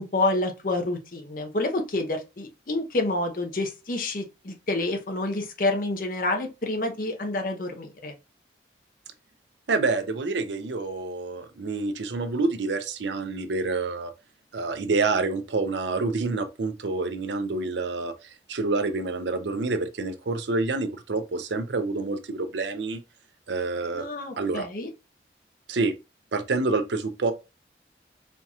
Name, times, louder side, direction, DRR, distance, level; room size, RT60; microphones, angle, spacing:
voice 1, 0.0-8.1 23.9-24.9, left 2 dB, 50° left, 0.7 m, -28 dB
voice 2, 9.7-14.1 14.5-23.0 23.5-24.1 24.4-24.7 25.7-25.9 26.3-27.3, right 3 dB, 80° right, 0.6 m, -27 dB
4.4 x 2.9 x 2.3 m
head